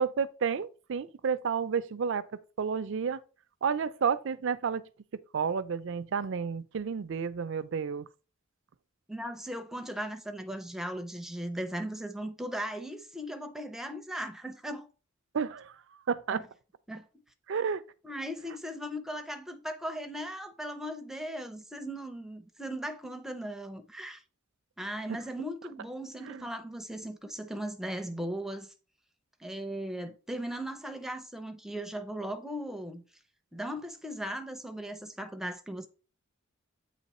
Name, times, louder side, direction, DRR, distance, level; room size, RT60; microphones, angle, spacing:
voice 1, 0.0-2.3 2.6-3.2 3.6-4.8 5.3-8.1 15.3-15.7 16.1-16.4 17.5-17.8 26.3-26.4, right 6 dB, 60° right, 0.4 m, -31 dB
voice 2, 9.1-14.9 16.3-16.5 16.9-17.1 18.0-24.2 24.8-28.7 29.4-33.0 33.5-35.9, equal, ahead, 0.5 m, -38 dB
8.3 x 3.0 x 4.1 m
head